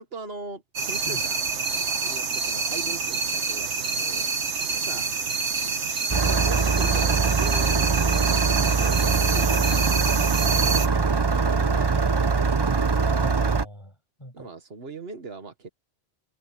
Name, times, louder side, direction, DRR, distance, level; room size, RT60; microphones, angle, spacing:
voice 1, 0.0-1.4 2.0-4.3 4.7-5.1 6.3-9.9 10.3-12.1 14.3-15.7, right 4 dB, 60° right, 1.7 m, -40 dB
sound 1, 0.8-10.9, right 4 dB, 80° right, 1.6 m, -27 dB
Engine starting, 6.1-13.7, right 4 dB, 30° right, 0.6 m, -22 dB
voice 2, 10.6-11.1 13.1-14.5, left 1 dB, 25° left, 7.8 m, -42 dB
omnidirectional pair, 1.2 m